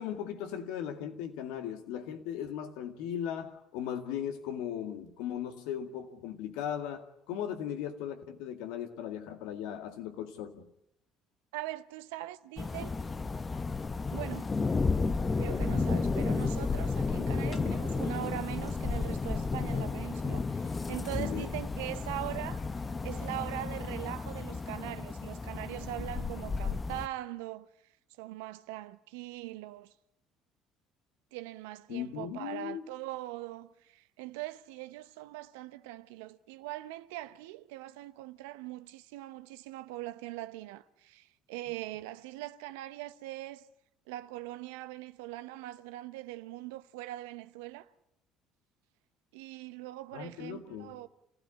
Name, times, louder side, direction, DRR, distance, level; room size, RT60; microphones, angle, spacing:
voice 1, 0.0-10.7 17.3-17.7 21.2-21.5 31.9-32.9 50.1-51.0, left 9 dB, 75° left, 2.1 m, -38 dB
voice 2, 11.5-12.9 14.1-14.5 15.3-27.7 28.2-29.9 31.3-43.6 44.1-47.9 49.3-51.1, right 16 dB, 80° right, 0.9 m, -41 dB
sound 1, 12.6-27.1, left 4 dB, 30° left, 1.1 m, -32 dB
27.0 x 16.0 x 10.0 m
hypercardioid pair, 60°, 0 cm